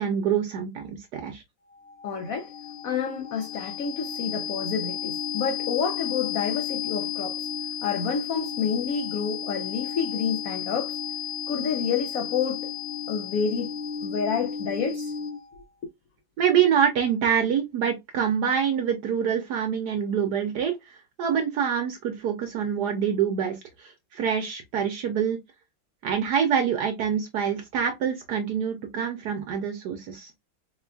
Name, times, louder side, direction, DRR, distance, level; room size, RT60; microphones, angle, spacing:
voice 1, 0.0-1.4 16.4-25.4 26.0-30.3, right 8 dB, 70° right, 1.1 m, -26 dB
sound 1, 1.7-15.6, left 8 dB, 60° left, 1.0 m, -33 dB
voice 2, 2.0-2.5 2.8-7.5 7.8-11.0 11.5-12.6 13.1-13.7 14.0-15.1, left 6 dB, 80° left, 0.7 m, -29 dB
4.3 x 2.3 x 2.3 m
omnidirectional pair, 2.1 m